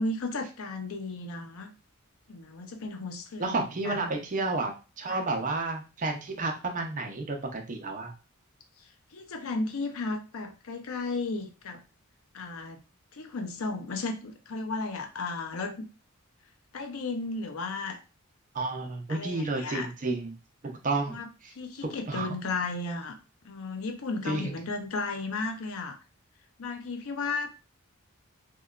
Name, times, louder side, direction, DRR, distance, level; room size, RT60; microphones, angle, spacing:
voice 1, 0.0-1.7 2.3-3.6 3.8-4.1 5.1-5.2 8.8-11.8 12.3-12.8 13.1-15.9 16.7-18.0 19.1-19.9 21.1-23.2 23.4-26.0 26.6-27.5, left 3 dB, 70° left, 4 dB, 0.5 m, -34 dB
voice 2, 3.4-8.1 18.5-20.3 20.6-21.5 22.1-22.3 24.3-24.5, right 3 dB, 35° right, 3 dB, 0.5 m, -31 dB
2.8 x 2.2 x 2.3 m, 0.31 s
head